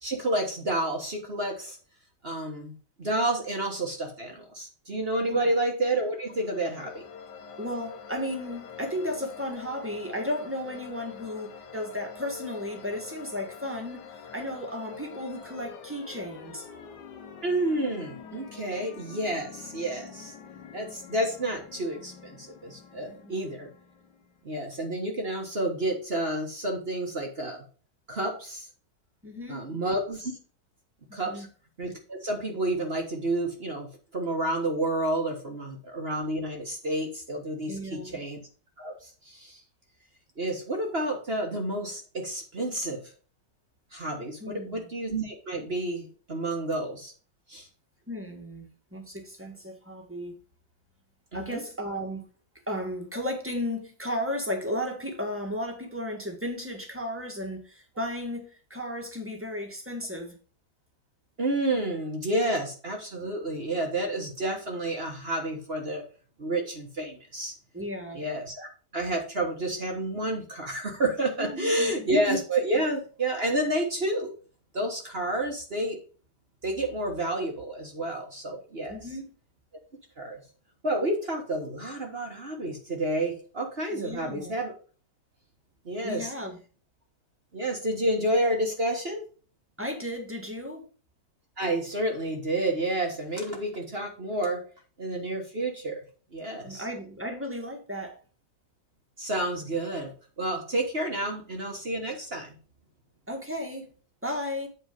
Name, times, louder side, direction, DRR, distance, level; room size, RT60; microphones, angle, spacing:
voice 1, 0.0-1.8 2.2-7.0 17.4-20.3 20.7-23.7 24.4-27.6 28.1-28.7 29.5-30.3 31.1-31.5 31.8-38.4 38.8-39.6 40.4-43.1 43.9-47.1 47.5-47.7 51.3-51.6 61.4-66.0 66.4-67.5 68.1-74.3 74.7-76.0 76.6-79.0 80.2-80.4 80.8-84.7 85.8-86.3 87.5-89.2 91.6-94.6 95.0-96.0 96.3-96.8 99.2-102.5, right 1 dB, 35° right, 1.5 m, -30 dB
voice 2, 5.2-5.5 7.6-16.6 23.2-23.3 29.2-29.6 31.2-31.4 37.7-38.1 44.4-44.8 48.1-50.3 51.3-52.2 52.7-60.4 67.7-68.2 71.4-72.1 78.9-79.3 83.9-84.5 86.0-86.6 89.8-90.8 96.6-98.2 103.3-103.9 104.2-104.7, left 1 dB, 5° right, 1.6 m, -34 dB
sound 1, 5.9-24.5, left 6 dB, 70° left, 1.5 m, -46 dB
8.5 x 4.5 x 5.1 m
omnidirectional pair, 2.0 m